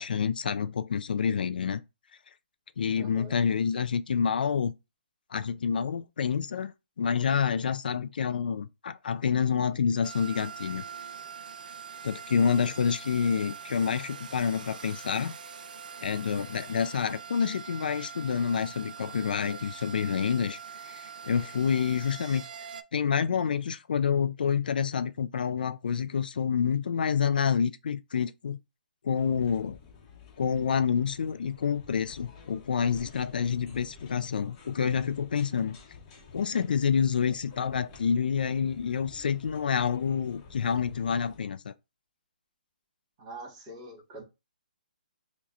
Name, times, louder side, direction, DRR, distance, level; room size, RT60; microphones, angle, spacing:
voice 1, 0.0-1.8 2.8-4.7 5.3-10.8 12.0-15.4 16.0-22.4 22.9-28.6 29.0-29.8 30.4-35.8 36.3-41.7, left 7 dB, 65° left, 0.3 m, -28 dB
voice 2, 2.9-3.4 43.2-44.2, right 2 dB, 30° right, 1.8 m, -44 dB
sound 1, 10.0-22.8, right 7 dB, 60° right, 0.4 m, -43 dB
sound 2, 29.2-41.4, left 4 dB, 25° left, 0.9 m, -51 dB
4.7 x 2.2 x 2.6 m
hypercardioid pair, 145°, 5 cm